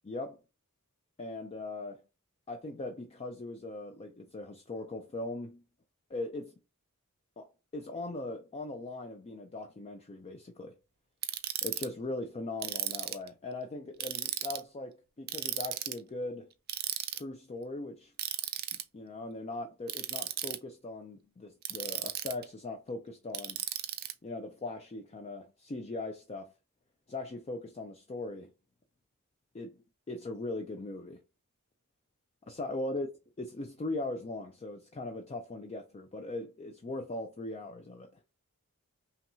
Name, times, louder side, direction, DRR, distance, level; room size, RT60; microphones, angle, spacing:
voice 1, 0.1-0.4 1.2-2.0 2.5-5.6 6.1-6.5 7.4-10.7 11.6-16.5 17.1-18.1 18.9-23.6 24.2-26.5 27.1-28.5 29.5-29.8 30.1-31.2 32.5-33.1 33.4-38.1, left 2 dB, 30° left, 0.4 m, -39 dB
Ratchet pawl, 11.2-11.9 12.6-13.3 14.0-14.6 15.3-16.0 16.7-17.2 18.2-18.8 19.9-20.6 21.6-22.4 23.3-24.1, right 12 dB, 45° right, 0.4 m, -35 dB
5.7 x 2.3 x 2.6 m
head